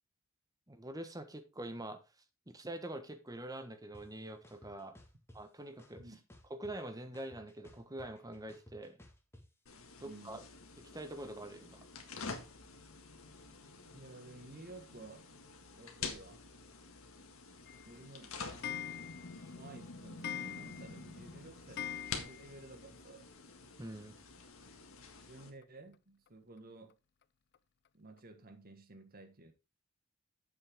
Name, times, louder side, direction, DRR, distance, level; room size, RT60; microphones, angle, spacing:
voice 1, 0.7-2.0 2.5-5.0 5.3-6.0 6.5-9.0 10.0-10.4 10.9-11.8 23.8-24.2, right 1 dB, 15° right, 1.3 m, -45 dB
sound 1, 3.9-4.0 4.4-5.4 5.8-6.9 7.1-9.4, left 1 dB, 10° left, 1.9 m, -57 dB
sound 2, 9.7-25.5, left 4 dB, 75° left, 1.9 m, -48 dB
voice 2, 10.0-10.4 13.9-15.2 15.8-16.4 17.8-18.9 19.5-23.3 25.3-26.9 27.9-29.5, right 2 dB, 45° right, 1.7 m, -54 dB
Clock, 17.7-22.7 23.1-23.2 23.4-23.5 23.7-23.8 25.0-25.1 25.6-25.7 26.3-26.4 26.9-27.0 27.5-27.6 28.2-28.3, left 9 dB, 50° left, 0.5 m, -45 dB
8.9 x 7.9 x 3.7 m
head